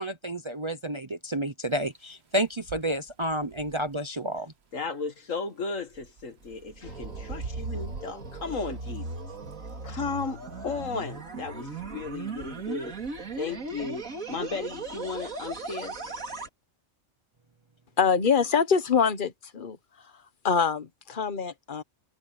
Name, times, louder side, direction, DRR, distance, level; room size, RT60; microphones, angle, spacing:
voice 1, 0.0-4.5, right 1 dB, 25° right, 0.7 m, -30 dB
sound 1, 1.6-1.9 2.4-4.4 5.8-6.5 7.0-8.1 8.5-9.8 11.8-13.5, right 6 dB, 55° right, 1.3 m, -46 dB
voice 2, 4.7-9.2 9.8-13.0 13.4-16.0, left 4 dB, 70° left, 2.2 m, -35 dB
sound 2, 6.4-16.5, right 3 dB, 90° right, 3.4 m, -37 dB
voice 3, 18.0-19.8 20.4-21.8, left 6 dB, 40° left, 1.3 m, -24 dB
omnidirectional pair, 1.4 m